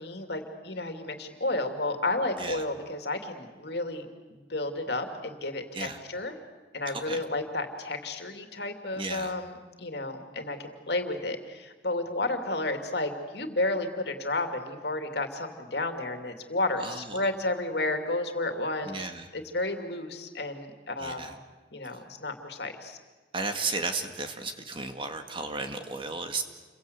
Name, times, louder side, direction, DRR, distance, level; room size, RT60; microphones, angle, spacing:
voice 1, 0.0-6.4 6.7-18.9 19.3-21.3 21.7-23.0, left 2 dB, 65° left, 6 dB, 2.8 m, -32 dB
voice 2, 6.9-7.2 8.9-9.3 16.8-17.3 18.8-19.3 21.0-21.4 21.9-22.0 23.3-26.4, right 3 dB, 30° right, 6 dB, 2.0 m, -34 dB
29.0 x 23.5 x 8.3 m, 1.3 s
head